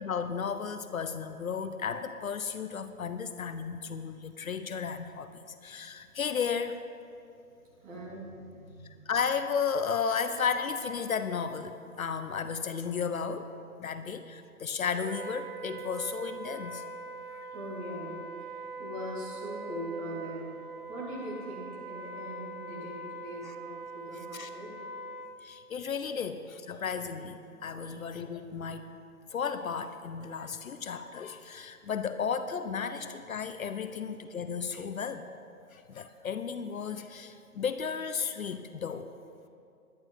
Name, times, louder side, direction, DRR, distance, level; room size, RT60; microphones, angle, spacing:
voice 1, 0.0-6.8 9.1-13.5 13.8-16.8 17.3-17.4 23.4-23.5 24.3-24.5 25.4-28.9 29.3-35.3 35.7-39.1, left 6 dB, 65° left, 10 dB, 0.7 m, -34 dB
voice 2, 7.8-9.1 17.4-20.5 20.9-24.7 27.5-28.0 32.9-33.0 33.8-34.0, equal, 15° right, -6 dB, 2.6 m, -42 dB
Wind instrument woodwind instrument, 15.0-25.4, right 3 dB, 40° right, 0.5 m, -42 dB
11.5 x 10.5 x 5.4 m, 2.5 s
figure-of-eight pair, 145°, 45 cm